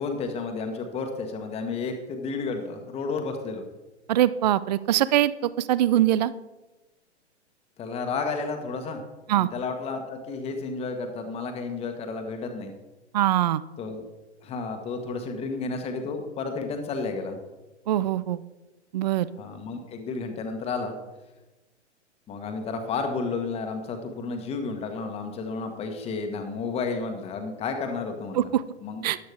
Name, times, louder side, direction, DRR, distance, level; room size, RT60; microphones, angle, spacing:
voice 1, 0.0-3.6 7.8-9.0 9.3-12.7 13.8-14.0 14.4-17.4 19.4-20.9 22.3-28.5 28.8-29.0, left 4 dB, 15° left, 5 dB, 1.4 m, -32 dB
voice 2, 4.1-6.3 9.3-9.5 13.1-13.6 17.9-18.4 18.9-19.3 28.4-28.6 29.0-29.2, right 12 dB, 40° right, 17 dB, 0.4 m, -22 dB
14.0 x 10.5 x 3.5 m, 1.1 s
figure-of-eight pair, 110°, 35 cm